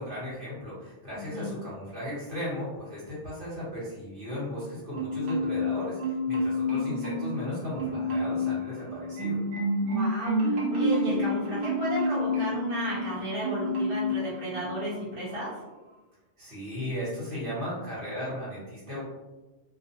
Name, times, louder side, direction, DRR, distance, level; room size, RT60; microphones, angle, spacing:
voice 1, 0.0-9.4 16.4-19.0, left 1 dB, 50° right, -9 dB, 1.2 m, -36 dB
voice 2, 1.1-1.5 9.8-15.5, equal, 30° right, -9 dB, 1.0 m, -33 dB
Marimba xylophone, 4.9-5.7 6.0-7.4 7.8-8.5 8.9-13.0 13.4-14.1 14.5-14.7, left 1 dB, 65° right, 0.9 m, -28 dB
2.4 x 2.1 x 2.7 m, 1.1 s
omnidirectional pair, 1.2 m